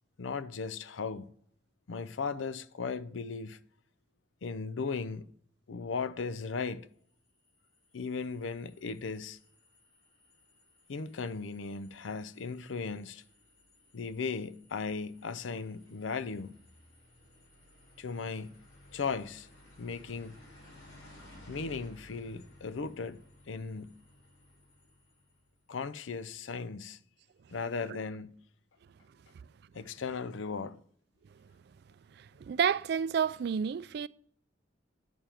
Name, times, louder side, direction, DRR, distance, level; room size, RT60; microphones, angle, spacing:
voice 1, 0.2-1.3 1.9-3.6 4.4-5.3 5.7-6.9 7.9-9.4 10.9-13.2 13.9-16.6 18.0-18.6 18.9-19.5 19.8-20.4 21.5-24.0 25.7-27.0 27.5-28.4 29.7-30.8, left 5 dB, 85° left, 0.5 m, -37 dB
sound 1, 7.1-25.6, left 1 dB, 70° left, 4.4 m, -58 dB
voice 2, 32.2-34.1, right 7 dB, 55° right, 0.3 m, -30 dB
9.1 x 6.9 x 4.3 m
head